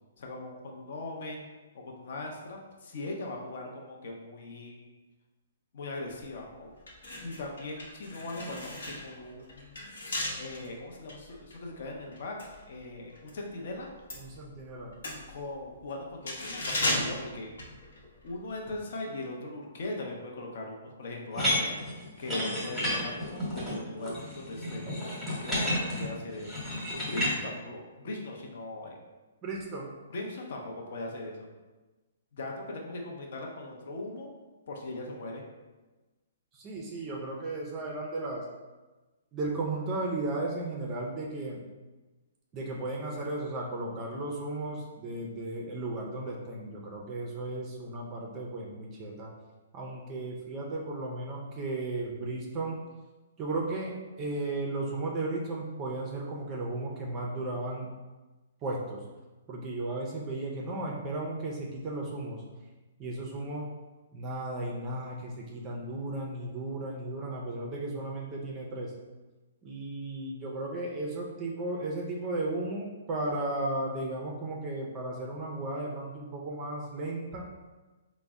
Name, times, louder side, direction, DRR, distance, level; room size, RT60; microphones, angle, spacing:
voice 1, 0.2-1.4 1.7-4.9 5.7-6.7 7.1-9.8 10.3-12.4 12.7-13.9 15.3-17.5 18.2-21.7 22.2-24.8 25.3-26.5 27.0-29.0 30.1-31.5 32.3-34.3 34.7-35.4, left 2 dB, 55° left, 0 dB, 0.6 m, -39 dB
sound 1, 6.2-6.3 6.8-13.4 13.7-18.3 18.6-18.8, left 1 dB, 85° left, 0.9 m, -36 dB
voice 2, 14.2-14.9 29.4-29.9 36.6-38.5 39.3-41.6 42.5-49.3 49.7-52.8 53.4-57.9 58.6-59.0 59.5-62.4 63.0-63.7 64.1-68.9 69.6-77.4, right 2 dB, 20° right, -1 dB, 0.4 m, -35 dB
sound 2, 21.3-27.3, left 1 dB, ahead, 0.9 m, -31 dB
3.9 x 2.0 x 3.5 m, 1.2 s
hypercardioid pair, 165°, 0 cm